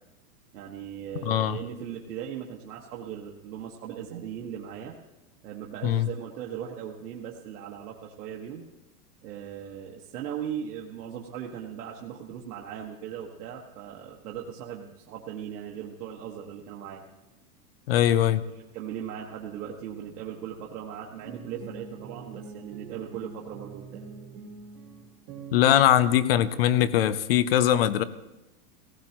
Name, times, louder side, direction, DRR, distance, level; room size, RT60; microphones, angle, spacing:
voice 1, 0.5-4.9 5.4-8.6 9.2-17.0 18.5-24.0, right 9 dB, 70° right, -2 dB, 1.6 m, -38 dB
voice 2, 1.3-1.6 5.8-6.1 17.9-18.4 25.5-28.0, left 11 dB, 40° left, 16 dB, 0.5 m, -21 dB
sound 1, 21.1-26.6, right 5 dB, 30° right, 1.5 m, -44 dB
18.0 x 16.5 x 2.9 m, 0.98 s
supercardioid pair, 175°, 48 cm